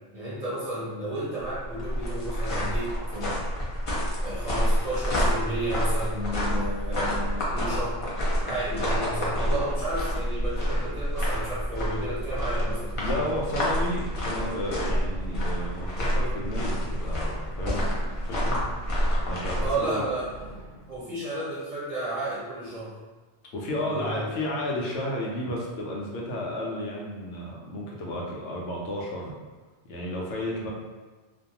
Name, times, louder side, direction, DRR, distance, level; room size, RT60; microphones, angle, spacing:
voice 1, 0.1-3.5 4.2-8.0 8.4-13.2 19.6-20.6 20.9-22.9 23.7-24.3, right 1 dB, 40° right, -8 dB, 0.6 m, -32 dB
sound 1, 1.4-19.7, equal, 40° left, 0.5 m, -28 dB
sound 2, 10.2-21.0, right 1 dB, 75° right, 0.9 m, -47 dB
voice 2, 13.0-17.9 18.3-18.6 19.2-20.0 23.5-29.3 29.9-30.7, left 1 dB, 85° left, -3 dB, 0.9 m, -32 dB
2.5 x 2.2 x 2.8 m, 1.3 s
omnidirectional pair, 1.2 m